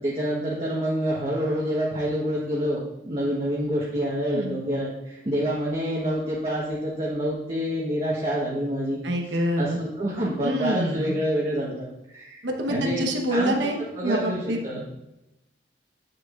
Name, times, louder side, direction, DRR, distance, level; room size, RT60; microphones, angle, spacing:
voice 1, 0.0-2.8 3.0-9.0 9.6-13.0 13.3-13.7 14.0-14.8, equal, 35° right, -6 dB, 1.2 m, -27 dB
voice 2, 9.0-9.8 10.4-11.1 12.4-13.8 14.0-14.6, equal, 85° right, 2 dB, 1.1 m, -26 dB
8.8 x 6.6 x 2.5 m, 0.91 s
head